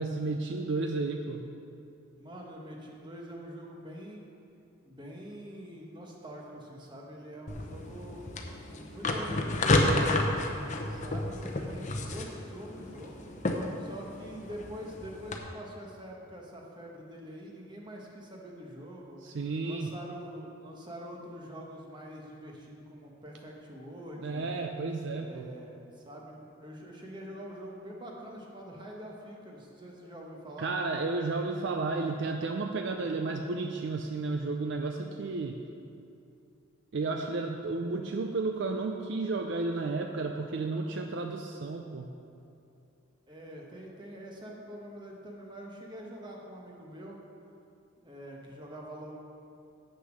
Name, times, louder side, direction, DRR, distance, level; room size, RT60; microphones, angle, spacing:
voice 1, 0.0-1.4 19.2-20.0 24.2-25.5 30.6-35.6 36.9-42.1, right 3 dB, 55° right, 4 dB, 0.4 m, -32 dB
voice 2, 2.2-4.2 4.8-8.2 8.7-10.2 10.9-13.3 13.8-19.2 19.6-24.5 25.1-30.7 43.3-47.2 48.0-49.1, equal, 20° right, -1 dB, 1.1 m, -45 dB
sound 1, 7.5-15.4, left 2 dB, 35° left, 0.7 m, -31 dB
8.1 x 6.5 x 6.4 m, 2.7 s
head